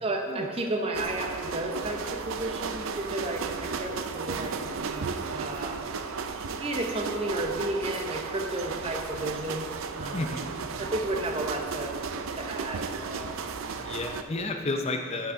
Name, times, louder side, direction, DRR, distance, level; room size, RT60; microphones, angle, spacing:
voice 1, 0.0-5.8 6.6-10.3 10.8-12.0 12.4-13.4, right 1 dB, 25° right, 3 dB, 0.7 m, -33 dB
sound 1, 0.9-14.2, right 5 dB, 70° right, 0.5 m, -34 dB
voice 2, 10.1-10.5 13.8-15.3, left 2 dB, 30° left, 4 dB, 0.5 m, -31 dB
7.9 x 6.7 x 5.5 m, 2.2 s
head